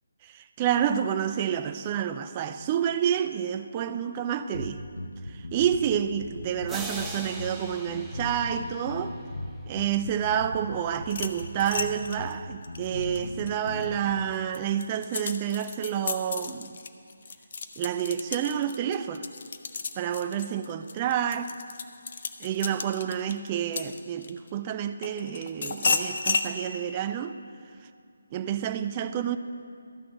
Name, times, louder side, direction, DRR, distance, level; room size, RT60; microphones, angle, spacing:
voice 1, 0.2-4.8 5.3-9.1 9.7-16.8 17.8-19.3 20.0-21.5 22.4-27.4 27.8-27.9 28.3-29.4, right 9 dB, 25° right, 9 dB, 0.3 m, -29 dB
sound 1, 4.5-14.1, left 1 dB, 85° left, 0.9 m, -38 dB
sound 2, 6.7-9.4, right 2 dB, 5° right, 0.8 m, -40 dB
sound 3, 11.0-13.9 14.3-24.5 25.0-26.5, left 4 dB, 50° left, 0.6 m, -33 dB
13.0 x 6.0 x 7.1 m, 2.3 s
figure-of-eight pair, 150°, 0 cm